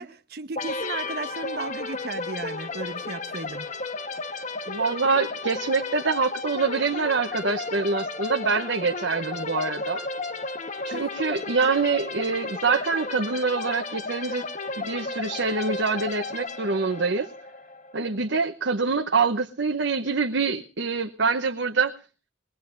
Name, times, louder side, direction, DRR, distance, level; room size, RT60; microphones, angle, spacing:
voice 1, 0.0-3.7 10.9-11.0, right 3 dB, 60° right, 1.0 m, -35 dB
sound 1, 0.6-18.2, left 3 dB, 40° left, 1.2 m, -33 dB
voice 2, 4.7-10.1 10.8-14.4 14.8-17.3 17.9-22.0, right 4 dB, 85° right, 0.9 m, -25 dB
21.5 x 19.5 x 2.5 m
head